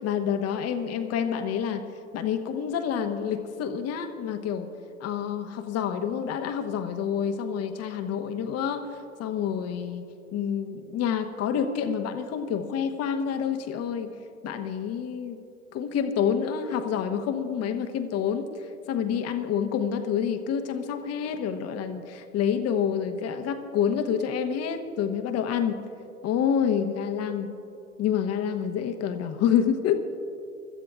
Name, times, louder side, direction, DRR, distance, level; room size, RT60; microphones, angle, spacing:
voice 1, 0.0-1.8 2.1-4.7 5.0-10.1 10.3-14.1 14.4-15.4 15.7-18.5 18.9-25.8 26.2-27.5 28.0-30.0, left 8 dB, 35° left, 8 dB, 1.1 m, -28 dB
25.0 x 13.5 x 2.4 m, 2.6 s
figure-of-eight pair, 80°, 41 cm